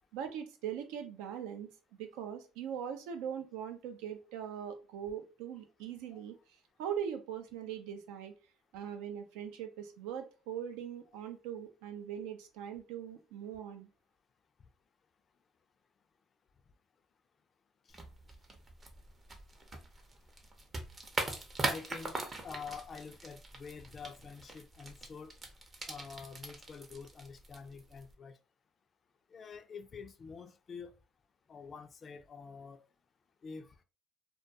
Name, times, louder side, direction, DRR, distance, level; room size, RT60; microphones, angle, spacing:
voice 1, 0.1-1.7 2.0-6.3 6.8-8.3 8.7-13.9, right 9 dB, 85° right, 0.4 m, -41 dB
sound 1, 17.9-28.1, right 2 dB, 30° right, 0.6 m, -42 dB
voice 2, 21.6-25.4 25.9-28.4 29.3-30.9 31.5-32.9 33.4-33.7, left 5 dB, 40° left, 0.3 m, -47 dB
2.2 x 2.2 x 2.7 m
supercardioid pair, 80°, 0 cm